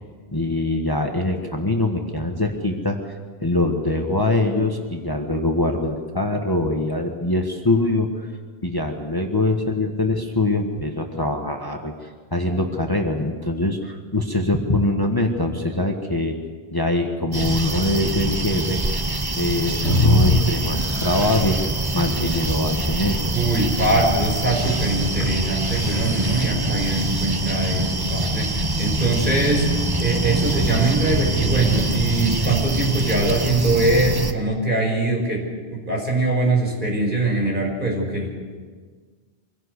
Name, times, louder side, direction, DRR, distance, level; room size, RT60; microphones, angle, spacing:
voice 1, 0.3-3.1 3.4-8.1 8.6-16.4 16.7-18.8 19.3-21.6 21.9-23.2, left 2 dB, 20° left, 3 dB, 1.5 m, -23 dB
sound 1, 17.3-34.3, right 2 dB, 20° right, 1.1 m, -24 dB
sound 2, 19.8-21.7 24.5-26.5, left 2 dB, 80° left, 2.1 m, -23 dB
voice 2, 23.3-29.7 30.0-38.3, right 2 dB, 50° right, 0 dB, 5.6 m, -22 dB
24.5 x 17.0 x 8.2 m, 1.5 s
omnidirectional pair, 1.1 m